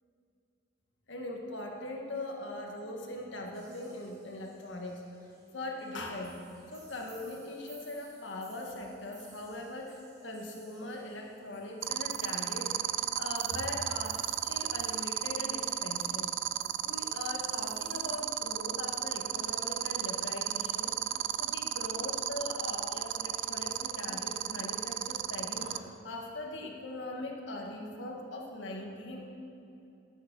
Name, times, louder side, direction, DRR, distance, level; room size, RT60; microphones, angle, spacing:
voice 1, 1.1-5.3 5.5-6.4 6.7-16.3 16.8-29.3, left 1 dB, 75° left, 1 dB, 1.6 m, -41 dB
sound 1, 3.5-18.2, right 3 dB, 20° right, 2.8 m, -58 dB
sound 2, 11.8-25.8, right 12 dB, 75° right, 0.4 m, -32 dB
14.0 x 10.0 x 5.3 m, 2.7 s
head